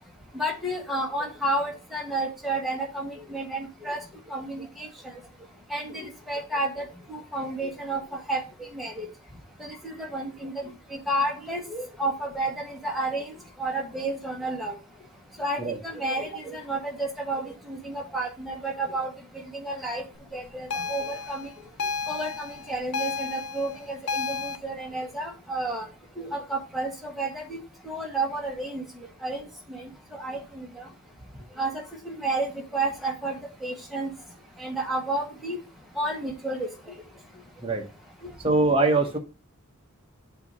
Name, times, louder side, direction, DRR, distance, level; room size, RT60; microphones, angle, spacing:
voice 1, 0.3-4.0 4.3-4.9 5.7-9.1 9.6-14.7 15.4-19.1 19.5-20.0 20.3-21.5 22.1-25.9 26.2-27.6 27.8-28.8 29.2-29.4 29.7-30.7 31.6-31.7 32.0-33.3 33.6-34.1 34.6-35.6 35.9-36.7, right 2 dB, ahead, -1 dB, 1.4 m, -31 dB
School Bell, 20.7-24.6, left 5 dB, 90° left, 0.6 m, -32 dB
voice 2, 38.4-39.2, right 3 dB, 25° right, 3 dB, 0.9 m, -22 dB
8.0 x 2.8 x 5.3 m, 0.31 s
head